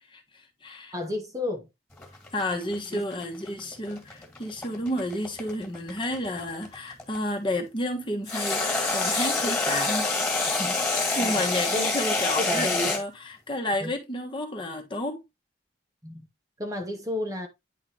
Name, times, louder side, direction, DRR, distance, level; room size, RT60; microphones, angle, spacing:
voice 1, 0.1-0.9 2.3-15.2, left 1 dB, 25° left, 1.3 m, -31 dB
voice 2, 0.9-1.7 2.9-3.0 11.2-11.4 11.7-11.9 12.3-12.9 13.8-13.9 16.0-16.3 16.6-17.5, left 1 dB, 15° right, 1.0 m, -31 dB
sound 1, 2.0-7.2 8.3-13.0, left 3 dB, 10° left, 2.0 m, -27 dB
9.8 x 3.8 x 3.1 m
head